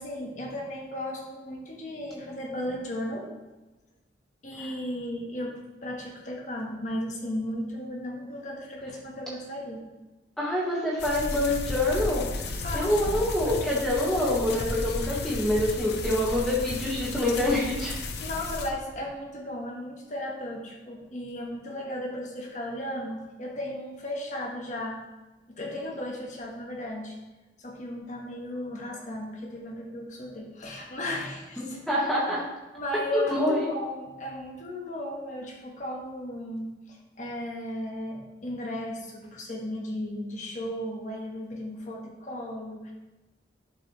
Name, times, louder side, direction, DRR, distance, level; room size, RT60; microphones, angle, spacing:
voice 1, 0.0-3.3 4.4-9.8 12.5-13.1 18.2-25.0 25.5-27.2 27.6-31.8 32.7-42.9, left 1 dB, 45° left, -1 dB, 1.4 m, -35 dB
voice 2, 10.4-12.3 12.7-18.0 31.6-32.4 33.1-33.6, left 1 dB, ahead, -6 dB, 1.6 m, -26 dB
sound 1, 11.0-18.7, left 2 dB, 65° left, 0.7 m, -33 dB
11.0 x 4.8 x 3.1 m, 1.1 s
head